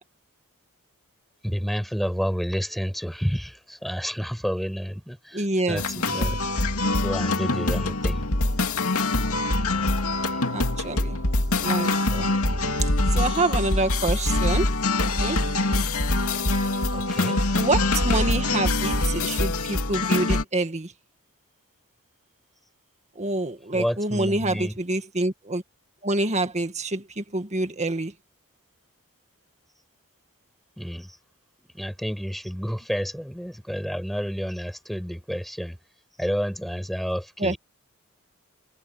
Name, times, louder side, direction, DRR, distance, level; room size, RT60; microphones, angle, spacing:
voice 1, 1.4-6.4 6.9-8.2 10.2-10.4 16.9-17.4 23.7-24.7 30.8-31.2 31.7-35.8 36.2-37.6, equal, ahead, 6.6 m, -30 dB
voice 2, 5.3-5.8 10.5-11.2 11.5-12.3 12.8-14.7 15.0-15.4 17.6-20.9 23.2-25.6 26.0-28.1 37.4-37.5, right 2 dB, 30° right, 1.8 m, -27 dB
sound 1, 5.8-20.4, left 2 dB, 70° left, 2.7 m, -24 dB
head